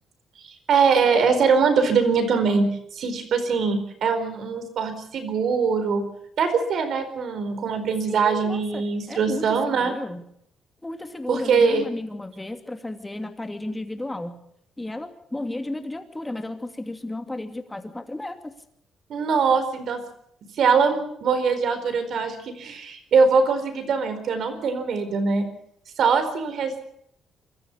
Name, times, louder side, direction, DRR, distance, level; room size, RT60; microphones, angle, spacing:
voice 1, 0.4-6.1 6.4-9.9 11.3-11.8 19.1-20.0 20.6-25.5 26.0-26.8, right 5 dB, 65° right, 9 dB, 4.5 m, -22 dB
voice 2, 8.1-10.2 10.8-14.4 14.8-18.5, left 1 dB, 15° left, 7 dB, 2.6 m, -33 dB
24.5 x 14.0 x 8.5 m, 0.71 s
cardioid pair, 90°, 0 cm